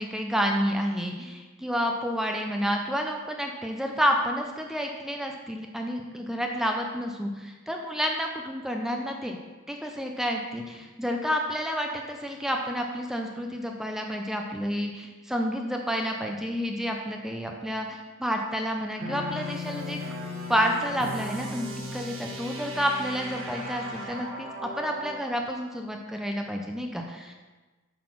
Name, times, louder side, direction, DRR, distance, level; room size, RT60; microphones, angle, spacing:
voice 1, 0.0-9.4 9.7-20.0 20.5-27.3, equal, ahead, 2 dB, 0.5 m, -30 dB
sound 1, 19.0-25.2, left 1 dB, 80° right, 1.4 m, -37 dB
8.5 x 4.0 x 6.0 m, 1.3 s
head